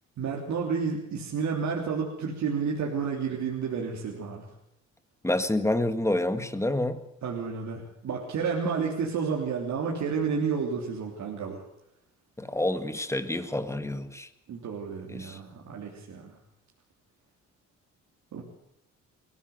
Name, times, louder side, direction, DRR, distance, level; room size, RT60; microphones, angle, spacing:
voice 1, 0.2-4.5 7.2-11.6 14.5-16.3 18.3-18.4, right 5 dB, 70° right, -1 dB, 3.4 m, -31 dB
voice 2, 5.2-7.0 12.4-14.3 15.1-15.4, left 1 dB, 10° left, 10 dB, 1.7 m, -28 dB
21.5 x 16.0 x 8.0 m, 0.81 s
cardioid pair, 90°, 30 cm